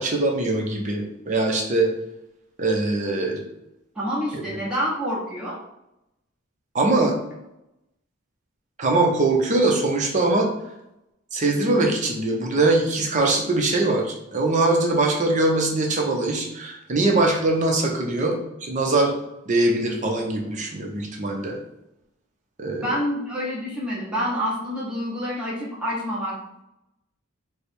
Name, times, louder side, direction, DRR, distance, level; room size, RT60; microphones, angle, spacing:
voice 1, 0.0-1.9 2.6-3.4 4.5-4.6 6.7-7.2 8.8-10.5 11.3-19.1 19.5-21.6 22.6-23.0, right 2 dB, 35° right, 1 dB, 0.6 m, -22 dB
voice 2, 3.9-5.6 22.8-26.3, equal, 5° right, -7 dB, 1.1 m, -27 dB
3.3 x 2.1 x 4.3 m, 0.86 s
head